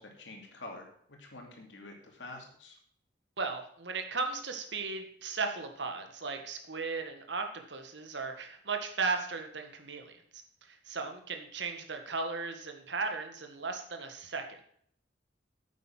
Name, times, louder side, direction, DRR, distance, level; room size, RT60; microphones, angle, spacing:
voice 1, 0.0-2.8, left 2 dB, 80° left, 1 dB, 2.7 m, -47 dB
voice 2, 3.4-10.4 10.7-14.6, right 4 dB, 70° right, 5 dB, 1.8 m, -36 dB
9.2 x 8.2 x 5.9 m, 0.63 s
head